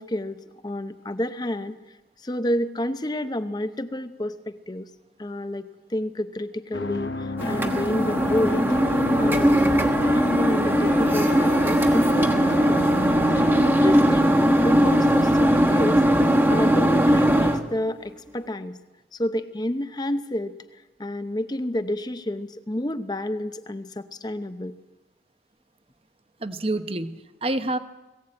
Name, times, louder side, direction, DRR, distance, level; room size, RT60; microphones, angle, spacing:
voice 1, 0.0-1.8 2.2-4.9 5.2-8.9 9.2-12.8 13.3-18.8 19.1-20.6 21.0-24.7, left 1 dB, 20° left, 11 dB, 0.7 m, -29 dB
sound 1, 6.7-13.7, left 2 dB, 75° left, 1.0 m, -32 dB
sound 2, 7.4-17.6, equal, 10° right, 1.3 m, -20 dB
voice 2, 26.4-27.8, right 2 dB, 30° right, 11 dB, 0.8 m, -28 dB
20.0 x 16.0 x 8.8 m, 1.2 s
head